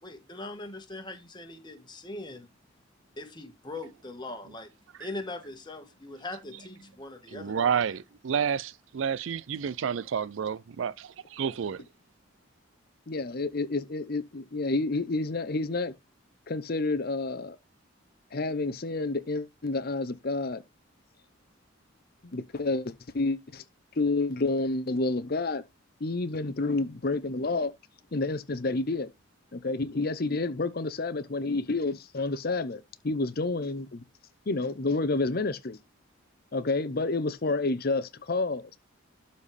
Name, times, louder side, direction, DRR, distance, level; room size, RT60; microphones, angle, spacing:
voice 1, 0.0-2.5 3.2-4.7 5.0-8.0, left 2 dB, 20° left, 1.5 m, -41 dB
voice 2, 7.3-11.8, right 7 dB, 70° right, 0.4 m, -30 dB
voice 3, 13.1-15.9 16.5-17.6 18.3-20.6 22.2-23.6 23.9-25.6 26.0-27.7 28.1-29.1 29.5-34.0 34.5-35.8 36.5-38.8, left 3 dB, 50° left, 0.7 m, -29 dB
12.5 x 4.2 x 3.3 m
head